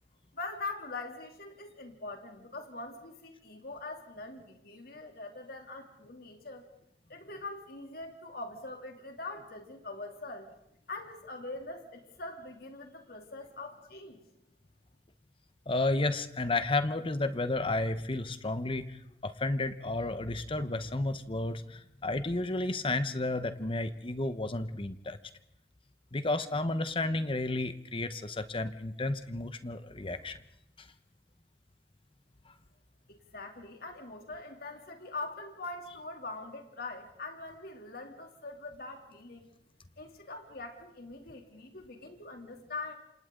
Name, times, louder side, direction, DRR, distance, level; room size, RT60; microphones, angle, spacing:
voice 1, 0.3-6.6 7.1-10.5 10.9-14.2 33.1-39.5 40.0-43.0, left 3 dB, 60° left, 4 dB, 3.0 m, -43 dB
voice 2, 15.7-25.2 26.1-30.4, left 2 dB, 30° left, 11 dB, 1.1 m, -32 dB
28.5 x 27.0 x 3.9 m, 0.79 s
head